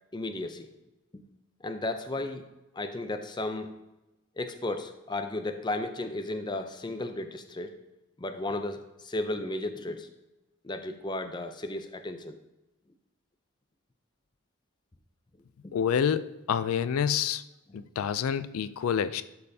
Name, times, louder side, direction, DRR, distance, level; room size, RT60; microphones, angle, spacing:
voice 1, 0.1-0.7 1.1-1.2 1.6-2.5 2.7-3.7 4.4-7.7 8.2-10.1 10.6-12.4 15.6-15.7 17.7-17.8, left 2 dB, 20° left, 8 dB, 0.4 m, -34 dB
voice 2, 15.7-17.4 17.7-19.2, left 8 dB, 80° left, 14 dB, 0.3 m, -28 dB
12.0 x 5.4 x 2.7 m, 1.0 s
head